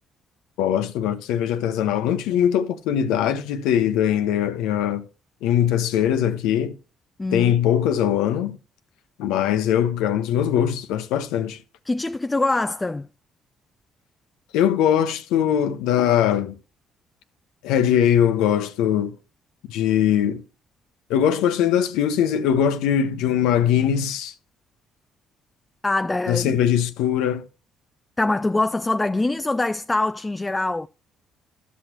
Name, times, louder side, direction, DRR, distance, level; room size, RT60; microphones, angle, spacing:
voice 1, 0.6-5.0 5.4-6.7 7.3-8.6 9.2-11.6 14.5-16.6 17.6-19.1 19.7-20.4 21.1-24.3 26.3-27.4, left 9 dB, 80° left, 0.7 m, -21 dB
voice 2, 7.2-7.6 11.9-13.1 25.8-26.6 28.2-30.9, left 2 dB, 20° left, 0.3 m, -23 dB
12.0 x 6.3 x 2.9 m
supercardioid pair, 60°, 0 cm